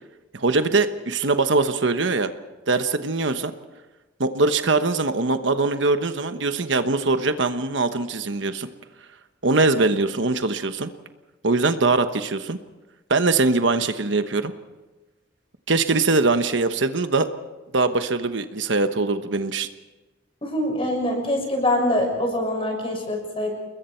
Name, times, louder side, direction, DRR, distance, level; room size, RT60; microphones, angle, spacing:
voice 1, 0.3-2.3 2.7-3.5 4.2-8.7 9.4-10.9 11.4-12.6 13.1-14.5 15.7-17.3 17.7-19.7, right 3 dB, 70° right, 9 dB, 1.1 m, -22 dB
voice 2, 20.4-23.5, left 1 dB, 30° left, 1 dB, 6.6 m, -24 dB
29.5 x 21.5 x 4.5 m, 1.2 s
head